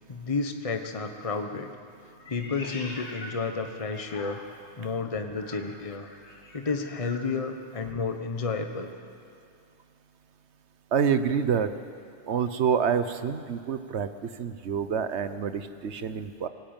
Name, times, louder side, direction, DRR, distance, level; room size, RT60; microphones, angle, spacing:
voice 1, 0.1-1.7 2.3-4.4 4.8-6.1 6.5-8.9, left 4 dB, 30° left, 6 dB, 1.2 m, -31 dB
Meow, 2.2-4.8 5.3-7.4, left 2 dB, 80° left, 2.2 m, -44 dB
voice 2, 10.9-11.7 12.3-16.5, right 7 dB, 75° right, 11 dB, 1.2 m, -27 dB
19.0 x 17.5 x 9.0 m, 2.4 s
omnidirectional pair, 1.2 m